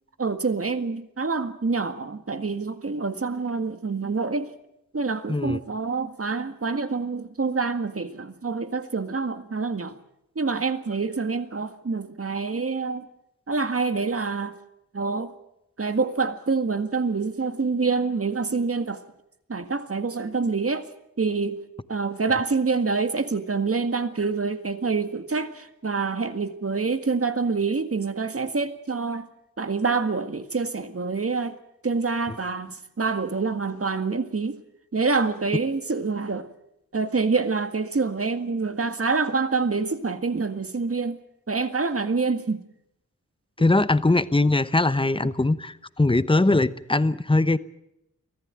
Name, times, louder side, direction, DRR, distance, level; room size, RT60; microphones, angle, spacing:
voice 1, 0.2-4.5 4.9-9.9 10.4-13.1 13.5-14.5 14.9-15.3 15.8-19.0 19.5-20.9 21.2-21.6 21.9-29.3 29.6-31.6 31.8-34.6 34.9-36.5 36.9-41.2 41.5-42.6, right 4 dB, 45° right, 1.9 m, -26 dB
voice 2, 43.6-47.6, left 2 dB, 15° left, 1.0 m, -21 dB
23.5 x 15.0 x 9.0 m
wide cardioid pair, 60°, 31 cm